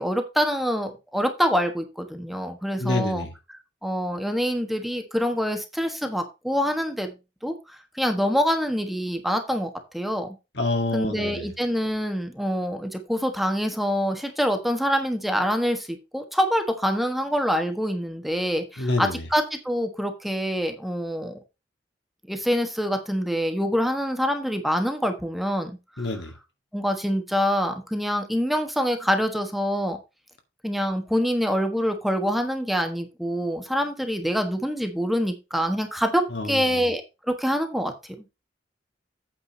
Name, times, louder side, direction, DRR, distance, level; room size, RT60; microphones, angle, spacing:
voice 1, 0.0-3.3 3.8-7.2 7.4-7.5 7.9-10.3 10.9-21.4 22.3-25.7 26.7-30.0 30.6-37.0 37.3-37.9, equal, ahead, 1.3 m, -25 dB
voice 2, 2.8-3.3 10.5-11.5 18.8-19.2 26.0-26.3 36.3-36.8, left 2 dB, 75° left, 2.1 m, -27 dB
8.6 x 5.0 x 5.2 m
head